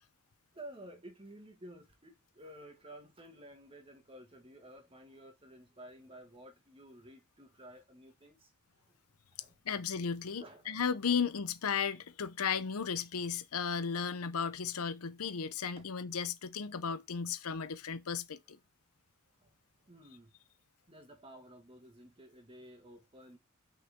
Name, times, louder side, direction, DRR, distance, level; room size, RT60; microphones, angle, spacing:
voice 1, 0.5-8.9 9.4-9.8 10.4-10.8 15.8-15.9 19.3-20.4 20.9-23.4, right 1 dB, 25° right, 1.9 m, -53 dB
voice 2, 9.6-18.6, left 6 dB, 90° left, 0.8 m, -35 dB
6.3 x 5.5 x 3.6 m
head